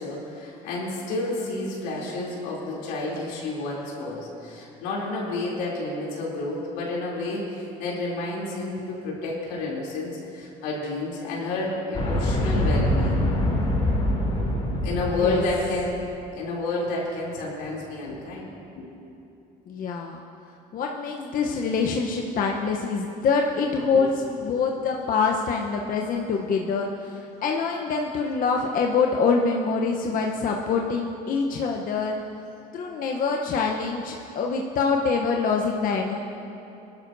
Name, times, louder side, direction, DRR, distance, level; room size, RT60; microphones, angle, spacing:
voice 1, 0.0-13.3 14.3-14.4 14.8-16.0 16.3-18.5 18.8-18.9 23.9-24.0, left 2 dB, 85° left, -4 dB, 2.9 m, -30 dB
sound 1, 11.9-15.9, left 1 dB, 30° left, 2.5 m, -24 dB
voice 2, 19.7-20.2 20.7-24.1 24.4-32.2 32.7-36.2, left 5 dB, 50° left, 1 dB, 0.8 m, -25 dB
20.5 x 11.5 x 2.6 m, 2.8 s
supercardioid pair, 95°, 18 cm